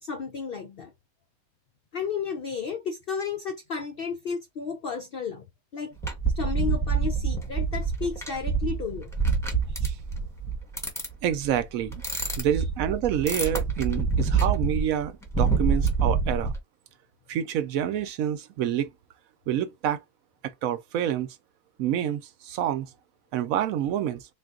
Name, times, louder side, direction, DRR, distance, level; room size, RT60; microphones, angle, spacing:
voice 1, 0.0-0.9 1.9-5.5 5.7-6.0 6.3-9.1, left 6 dB, 65° left, 0.5 m, -33 dB
sound 1, 6.0-16.6, right 5 dB, ahead, 1.0 m, -27 dB
voice 2, 11.2-12.0 12.4-16.5 17.3-18.9 19.5-20.0 20.4-21.3 21.8-22.9 23.3-24.2, right 10 dB, 70° right, 1.0 m, -27 dB
3.8 x 2.4 x 3.6 m
omnidirectional pair, 1.6 m